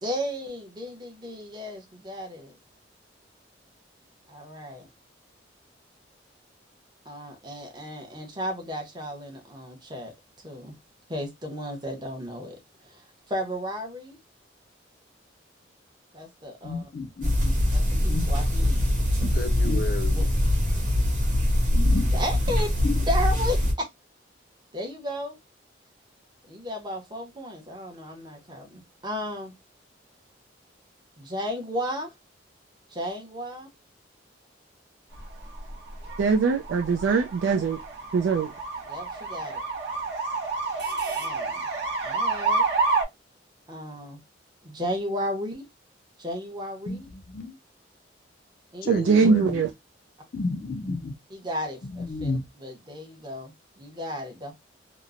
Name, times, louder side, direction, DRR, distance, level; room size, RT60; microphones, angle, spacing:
voice 1, 0.0-2.5 4.3-4.9 7.0-10.7 11.1-14.2 16.1-16.8 17.7-18.8 20.1-20.2 22.1-22.7 23.0-23.7 24.7-25.4 26.5-29.5 31.2-32.1 32.9-33.7 38.9-39.6 41.2-41.7 42.0-42.6 43.7-44.2 44.6-45.6 46.2-47.1 48.7-49.0 51.3-52.3 52.6-54.5, equal, 25° right, 0.8 m, -34 dB
voice 2, 16.6-17.5 18.1-18.3 19.3-20.3 21.7-22.1 22.8-23.0 46.9-47.5 48.8-49.6 50.3-51.1 51.8-52.4, left 3 dB, 50° left, 0.4 m, -31 dB
sound 1, 17.2-23.7, left 1 dB, 45° right, 1.1 m, -23 dB
sound 2, 35.1-43.0, right 3 dB, 65° right, 0.8 m, -29 dB
voice 3, 36.2-37.8 38.1-38.5 48.9-49.7, right 5 dB, 90° right, 0.3 m, -22 dB
2.9 x 2.0 x 2.4 m
head